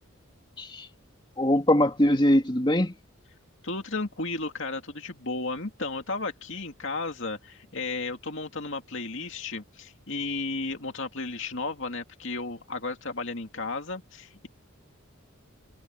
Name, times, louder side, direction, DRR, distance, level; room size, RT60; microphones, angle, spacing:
voice 1, 1.4-2.9, left 1 dB, 20° left, 2.8 m, -22 dB
voice 2, 3.6-14.5, left 3 dB, 60° left, 2.6 m, -34 dB
head